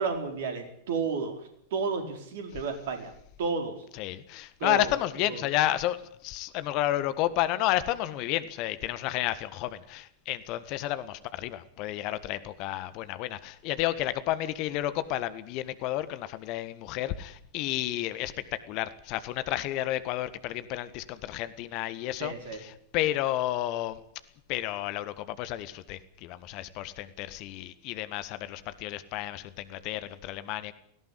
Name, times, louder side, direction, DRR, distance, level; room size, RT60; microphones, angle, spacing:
voice 1, 0.0-1.3 1.7-3.1 3.4-3.7 4.6-4.9 5.2-5.4 22.2-22.6, right 5 dB, 55° right, 6 dB, 4.6 m, -31 dB
voice 2, 3.9-6.0 6.2-18.3 18.7-24.0 24.5-30.7, left 14 dB, 40° left, 14 dB, 1.5 m, -31 dB
18.0 x 17.5 x 9.9 m, 0.69 s
figure-of-eight pair, 90°, 0 cm